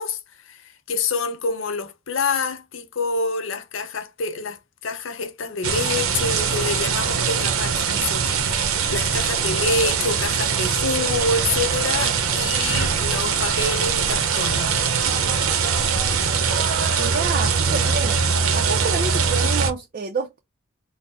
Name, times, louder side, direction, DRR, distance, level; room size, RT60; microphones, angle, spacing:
voice 1, 0.0-14.7, left 3 dB, 65° left, 0.6 m, -27 dB
sound 1, 5.6-19.7, right 6 dB, 85° right, 0.7 m, -22 dB
voice 2, 17.0-18.2 18.5-20.4, right 4 dB, 40° right, 0.4 m, -28 dB
4.1 x 2.0 x 4.0 m
head